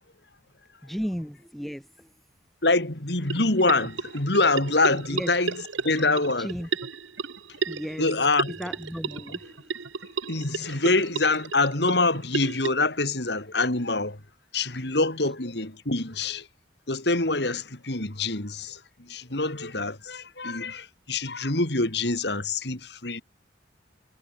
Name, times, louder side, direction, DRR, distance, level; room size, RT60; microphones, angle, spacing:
voice 1, 0.8-2.1 5.1-5.3 6.4-6.7 7.7-8.1 8.6-9.7, equal, ahead, 2.7 m, -34 dB
voice 2, 2.6-6.5 8.0-8.6 10.3-14.2 14.5-16.5 16.9-23.2, left 3 dB, 60° left, 3.0 m, -25 dB
sound 1, 3.3-12.7, right 4 dB, 85° right, 1.4 m, -34 dB
head